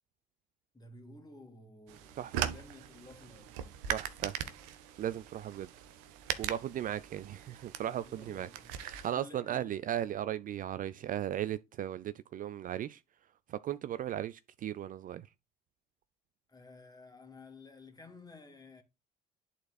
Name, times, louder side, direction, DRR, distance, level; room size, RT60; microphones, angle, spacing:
voice 1, 0.7-3.5 8.1-9.9 16.5-18.8, left 2 dB, 20° left, 2.1 m, -54 dB
sound 1, 1.9-9.1, right 10 dB, 75° right, 0.7 m, -40 dB
voice 2, 3.9-4.4 5.0-5.7 6.4-8.5 8.8-13.0 13.5-15.3, right 11 dB, 45° right, 0.4 m, -36 dB
11.0 x 4.2 x 2.3 m
hypercardioid pair, 60°, 20 cm